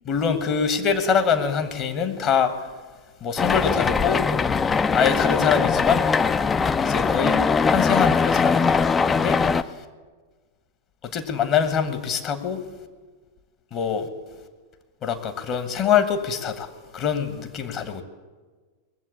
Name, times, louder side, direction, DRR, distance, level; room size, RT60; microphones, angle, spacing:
voice 1, 0.1-2.5 3.2-4.2 4.9-6.1 6.8-7.4 7.7-9.4 11.1-12.6 13.7-14.1 15.0-16.7 16.9-18.0, left 7 dB, 35° left, 9 dB, 1.3 m, -24 dB
sound 1, 3.4-9.6, left 5 dB, 20° left, 0.4 m, -21 dB
20.0 x 7.5 x 8.4 m, 1.4 s
figure-of-eight pair, 90°, 0 cm